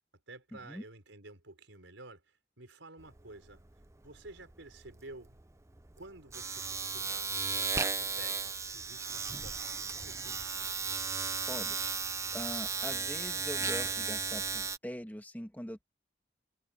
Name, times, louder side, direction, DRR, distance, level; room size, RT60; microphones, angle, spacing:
voice 1, 0.3-3.6 4.0-5.4 6.0-10.7, right 2 dB, 90° right, 5.0 m, -52 dB
Domestic sounds home sounds, 3.0-3.2 3.5-14.8, right 5 dB, 15° right, 0.6 m, -35 dB
voice 2, 11.5-11.8 12.3-15.8, equal, 10° left, 2.1 m, -42 dB
head